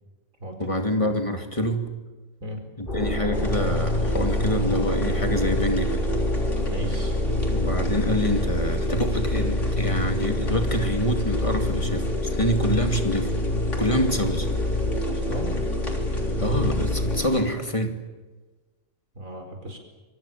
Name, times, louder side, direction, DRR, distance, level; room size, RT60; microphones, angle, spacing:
voice 1, 0.6-1.9 2.8-6.1 7.5-12.0 12.3-13.3 13.8-14.5 16.4-18.0, equal, 25° left, 5 dB, 2.5 m, -26 dB
sound 1, 2.9-17.2, left 1 dB, 40° left, 7.0 m, -25 dB
sound 2, 3.3-17.4, left 1 dB, 65° left, 3.9 m, -43 dB
voice 2, 6.6-7.2 15.1-15.6 19.2-19.8, right 1 dB, 85° right, 4 dB, 5.2 m, -36 dB
26.5 x 24.0 x 7.3 m, 1.3 s
omnidirectional pair, 1.4 m